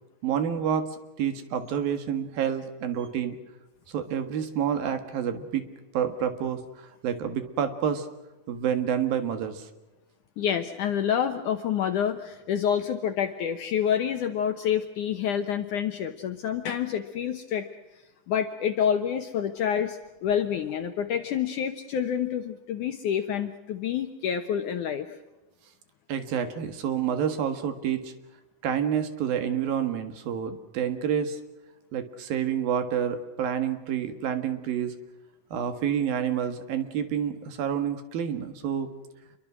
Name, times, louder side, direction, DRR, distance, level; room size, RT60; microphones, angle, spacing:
voice 1, 0.2-0.9 1.2-3.4 3.9-5.7 5.9-6.6 7.0-8.1 8.5-9.7 26.1-28.1 28.6-31.4 31.9-34.9 35.5-38.9, right 8 dB, 65° right, 9 dB, 3.2 m, -28 dB
voice 2, 10.4-17.7 18.3-25.2, left 8 dB, 70° left, 7 dB, 2.1 m, -28 dB
27.5 x 23.0 x 6.2 m, 1.1 s
omnidirectional pair, 4.7 m